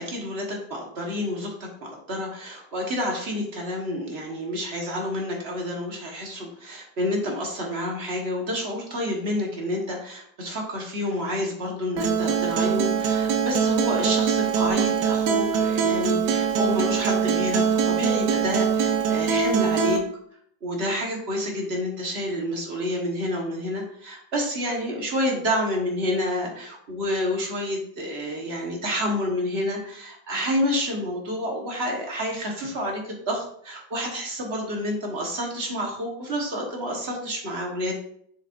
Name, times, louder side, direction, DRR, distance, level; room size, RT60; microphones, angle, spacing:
voice 1, 0.0-20.0 20.6-37.9, left 1 dB, 40° right, 0 dB, 1.6 m, -29 dB
Acoustic guitar, 12.0-20.0, right 6 dB, 75° right, 1.4 m, -23 dB
7.3 x 6.7 x 2.6 m, 0.67 s
omnidirectional pair, 1.9 m